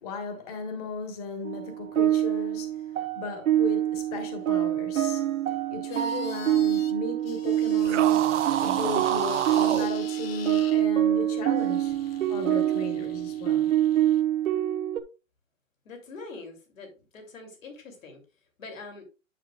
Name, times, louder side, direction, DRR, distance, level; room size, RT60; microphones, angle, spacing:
voice 1, 0.0-5.2 5.7-11.9 12.3-13.7, left 4 dB, 30° left, 1.5 m, -36 dB
sound 1, 1.4-15.0, right 12 dB, 85° right, 1.1 m, -26 dB
sound 2, 5.9-6.9 7.2-10.9 11.6-14.2, left 8 dB, 45° left, 0.9 m, -47 dB
sound 3, 7.8-9.9, right 12 dB, 65° right, 0.5 m, -28 dB
voice 2, 15.8-18.2 18.6-19.0, left 3 dB, 75° left, 2.9 m, -43 dB
9.9 x 6.1 x 2.3 m
hypercardioid pair, 165°, 39 cm